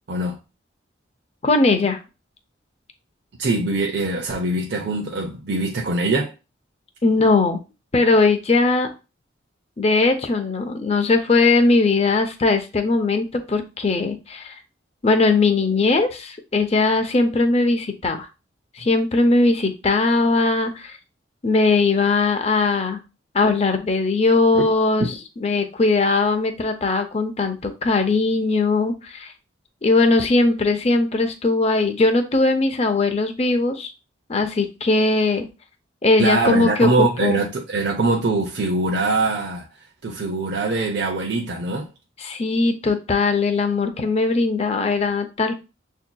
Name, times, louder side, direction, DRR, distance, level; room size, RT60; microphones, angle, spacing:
voice 1, 1.4-2.0 7.0-7.6 7.9-8.9 9.8-14.5 15.0-18.3 18.8-21.0 21.4-23.0 23.3-25.1 25.4-29.3 29.8-33.9 34.3-35.5 36.0-37.4 42.2-45.5, left 3 dB, 35° left, 0.6 m, -19 dB
voice 2, 3.4-6.3 24.5-24.6 36.2-39.7 40.0-41.9, right 2 dB, 60° right, 0.6 m, -22 dB
6.9 x 2.7 x 2.2 m
head